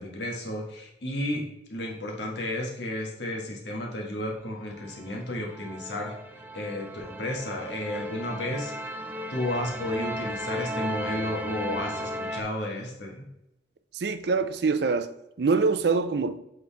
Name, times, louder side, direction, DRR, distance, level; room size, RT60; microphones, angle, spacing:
voice 1, 0.0-6.1 6.5-8.7 9.3-13.3, left 1 dB, 85° left, 1.6 m, -32 dB
sound 1, 4.7-12.4, equal, 10° right, 0.4 m, -35 dB
voice 2, 13.9-16.4, right 4 dB, 70° right, 0.5 m, -25 dB
8.0 x 3.9 x 3.4 m
head